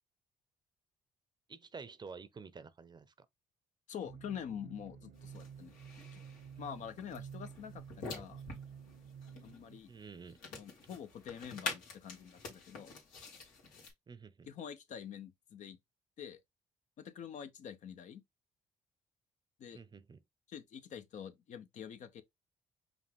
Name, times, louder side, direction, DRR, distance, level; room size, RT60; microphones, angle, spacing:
voice 1, 1.5-3.3 9.9-10.4 14.1-14.5 19.7-20.2, right 5 dB, 35° right, 0.6 m, -50 dB
voice 2, 3.9-6.2 6.6-8.4 9.4-9.9 10.5-12.9 14.5-15.8 16.2-16.4 17.0-18.2 19.6-19.8 20.5-22.2, left 8 dB, 65° left, 0.8 m, -46 dB
sound 1, 4.0-9.8, right 7 dB, 80° right, 1.1 m, -51 dB
sound 2, 5.2-13.9, left 4 dB, 90° left, 1.7 m, -47 dB
5.3 x 2.4 x 3.4 m
supercardioid pair, 75°, 13 cm